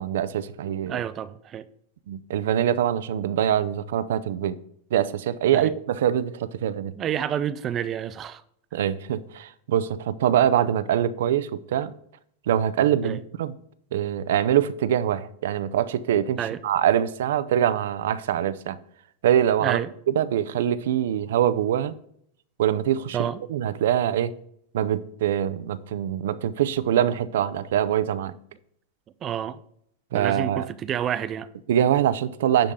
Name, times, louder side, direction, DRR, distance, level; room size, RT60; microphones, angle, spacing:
voice 1, 0.0-1.0 2.1-4.6 4.9-6.9 8.7-11.9 12.5-13.5 13.9-18.8 19.2-19.8 20.1-21.9 22.6-24.3 24.7-28.3 30.1-30.7 31.7-32.7, right 10 dB, 70° right, 0.6 m, -24 dB
voice 2, 0.9-1.7 5.5-5.7 7.0-8.4 13.0-13.2 16.4-16.6 19.6-19.9 23.1-23.4 29.2-29.6 30.1-31.5, right 9 dB, 20° right, 0.3 m, -29 dB
10.5 x 3.8 x 7.1 m
supercardioid pair, 175°, 0 cm